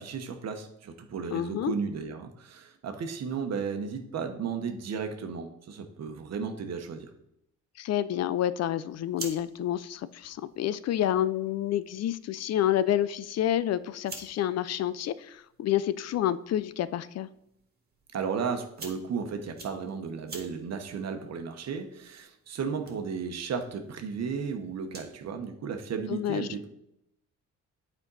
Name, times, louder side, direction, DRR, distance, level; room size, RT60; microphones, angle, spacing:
voice 1, 0.0-7.1 18.1-26.7, right 6 dB, 60° right, 6 dB, 1.1 m, -34 dB
voice 2, 1.3-1.7 7.8-17.3 26.1-26.5, left 11 dB, 60° left, 16 dB, 0.4 m, -29 dB
sound 1, 8.8-25.3, right 3 dB, 30° right, 1.8 m, -50 dB
8.6 x 4.4 x 4.0 m, 0.79 s
cardioid pair, 90°, 30 cm